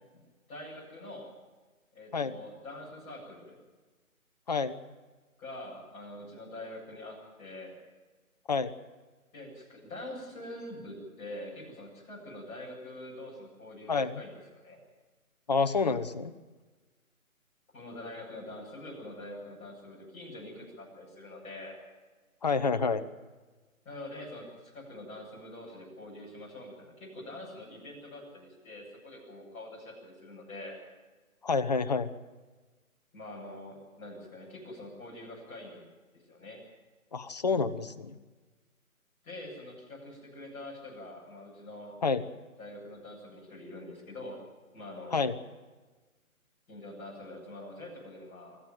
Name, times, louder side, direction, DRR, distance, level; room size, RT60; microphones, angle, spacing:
voice 1, 0.5-1.3 1.9-3.6 5.4-7.7 9.3-14.8 17.7-21.8 23.8-30.8 33.1-35.8 36.1-36.6 39.2-42.0 42.6-44.4 44.7-45.3 46.7-48.6, left 1 dB, 15° left, -5 dB, 8.0 m, -45 dB
voice 2, 4.5-4.8 8.5-8.7 13.9-14.2 15.5-16.3 22.4-23.0 31.4-32.1 37.1-38.1 42.0-42.2 45.1-45.4, left 4 dB, 30° left, 12 dB, 0.9 m, -28 dB
25.0 x 14.0 x 9.2 m, 1.3 s
figure-of-eight pair, 150°, 43 cm